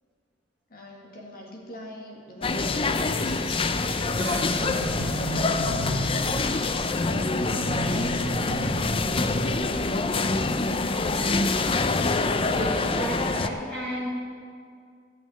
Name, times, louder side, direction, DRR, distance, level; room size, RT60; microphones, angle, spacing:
voice 1, 0.7-4.3 4.7-8.7, left 1 dB, 50° left, -1 dB, 2.1 m, -43 dB
Fastfood Restaurant in Vienna Austria, 2.4-13.5, left 3 dB, 30° left, 0.5 m, -25 dB
sound 1, 4.2-11.4, right 2 dB, 60° right, 1.0 m, -35 dB
voice 2, 12.5-14.1, left 1 dB, 5° left, -8 dB, 2.7 m, -31 dB
13.5 x 6.0 x 9.0 m, 2.2 s
head